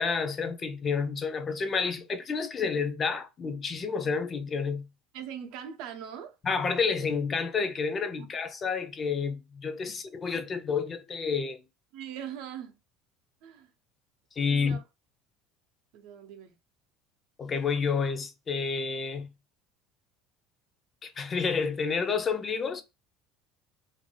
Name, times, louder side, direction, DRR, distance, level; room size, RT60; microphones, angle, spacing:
voice 1, 0.0-4.9 6.4-11.6 14.4-14.8 17.4-19.3 21.0-22.8, left 5 dB, 30° left, 0.4 m, -29 dB
voice 2, 5.1-6.3 8.2-8.3 9.8-10.0 11.9-12.8 13.4-13.7 14.5-14.8 15.9-16.5, right 9 dB, 70° right, 0.6 m, -41 dB
2.5 x 2.2 x 3.2 m
supercardioid pair, 120°, 0 cm